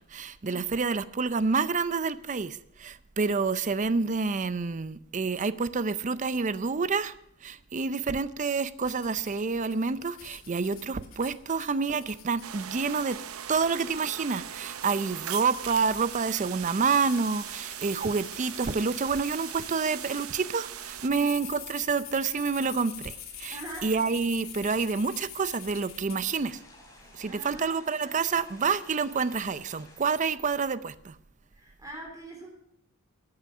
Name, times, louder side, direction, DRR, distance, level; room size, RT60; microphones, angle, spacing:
voice 1, 0.0-7.1 7.4-13.2 13.5-26.6 27.1-31.2, right 5 dB, 35° right, 0.5 m, -28 dB
sound 1, 8.8-20.3 20.8-26.2, left 8 dB, 80° left, 2.6 m, -46 dB
sound 2, 12.4-21.1, right 10 dB, 90° right, 0.7 m, -40 dB
voice 2, 23.5-23.9 27.2-27.8 31.5-32.5, right 1 dB, 15° right, 3.4 m, -43 dB
sound 3, 26.1-30.3, left 2 dB, 15° left, 3.3 m, -54 dB
13.0 x 8.9 x 6.0 m
head